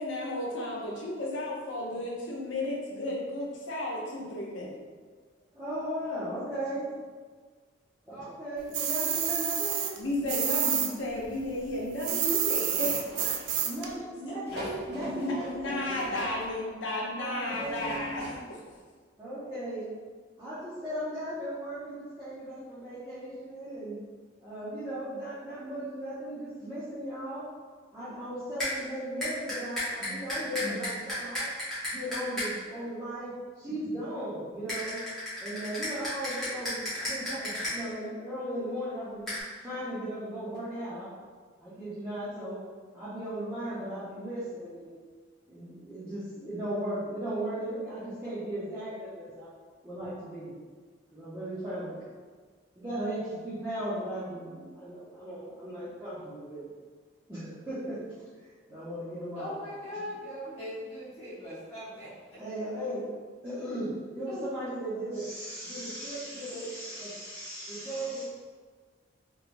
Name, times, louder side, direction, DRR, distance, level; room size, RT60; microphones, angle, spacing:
voice 1, 0.0-4.7 10.0-13.5 14.5-14.6 15.0-18.6, left 1 dB, 85° left, -3 dB, 0.7 m, -33 dB
voice 2, 5.5-7.0 8.1-10.0 13.6-16.1 17.1-18.1 19.2-19.9 20.4-24.0 24.4-27.4 27.9-31.5 31.9-35.0 35.4-39.2 39.6-41.1 41.6-42.6 42.9-44.9 45.5-49.5 49.8-50.5 51.1-52.0 52.8-56.7 57.3-58.0 58.7-59.6 62.3-63.0 63.4-68.2, right 1 dB, 15° right, -14 dB, 0.7 m, -37 dB
sound 1, 8.7-10.9 11.2-13.9, right 9 dB, 75° right, 0.3 m, -29 dB
sound 2, 12.7-13.9 14.5-16.6 17.4-18.4 18.7-18.8, equal, 60° right, 1.0 m, -42 dB
sound 3, 28.6-28.7 29.2-32.5 34.7-37.7 39.3-39.4, left 1 dB, ahead, 1.1 m, -33 dB
voice 3, 59.3-62.1 64.2-64.4, left 1 dB, 35° left, -12 dB, 1.1 m, -40 dB
3.2 x 3.0 x 2.5 m, 1.5 s
head